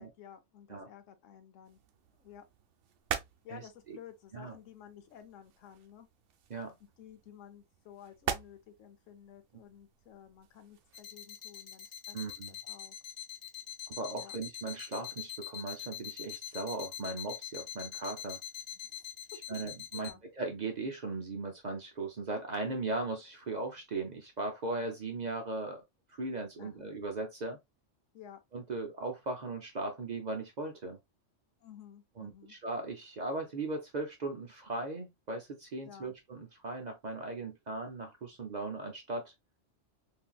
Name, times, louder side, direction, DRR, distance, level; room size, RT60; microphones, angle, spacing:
voice 1, 0.0-1.8 2.2-2.5 3.4-6.1 7.0-12.2 12.5-13.0 14.1-14.3 18.8-19.1 19.9-20.2 26.6-26.9 28.1-28.4 31.6-32.6 35.8-36.1, left 9 dB, 85° left, 1.1 m, -53 dB
sound 1, 1.6-11.0, right 8 dB, 75° right, 0.9 m, -44 dB
sound 2, 10.9-20.1, left 10 dB, 40° left, 0.6 m, -42 dB
voice 2, 12.1-12.5 13.9-18.4 19.5-20.1 20.4-25.8 26.1-27.6 28.5-31.0 32.2-39.3, right 2 dB, 50° right, 0.6 m, -38 dB
3.6 x 2.6 x 2.3 m
omnidirectional pair, 1.3 m